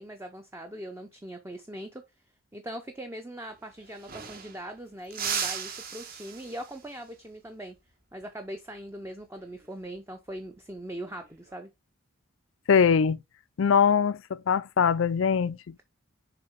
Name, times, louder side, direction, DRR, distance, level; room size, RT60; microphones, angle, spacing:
voice 1, 0.0-2.0 2.5-7.8 8.1-11.7, right 1 dB, 10° right, 0.6 m, -41 dB
sound 1, 3.5-3.6 3.8-4.7 5.1-6.9 9.4-9.7 11.1-11.5, right 7 dB, 45° right, 1.2 m, -36 dB
voice 2, 12.7-13.2 13.6-15.8, left 6 dB, 65° left, 0.4 m, -22 dB
6.8 x 3.9 x 3.5 m
head